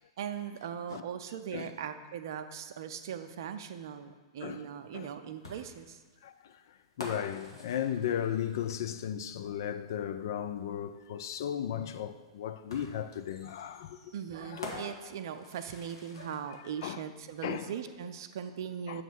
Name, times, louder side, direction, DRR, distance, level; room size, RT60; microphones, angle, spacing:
voice 1, 0.2-6.0 13.4-13.5 14.1-19.0, right 8 dB, 60° right, 0.5 m, -39 dB
sound 1, 5.4-9.1 10.6-10.7 12.7-16.6, left 2 dB, 80° left, 1.2 m, -47 dB
voice 2, 6.2-14.1 14.4-14.9 16.2-16.4 16.8-17.0 17.4-17.7 18.9-19.0, left 9 dB, 60° left, 0.4 m, -36 dB
7.8 x 3.1 x 5.8 m
figure-of-eight pair, 105°, 2 cm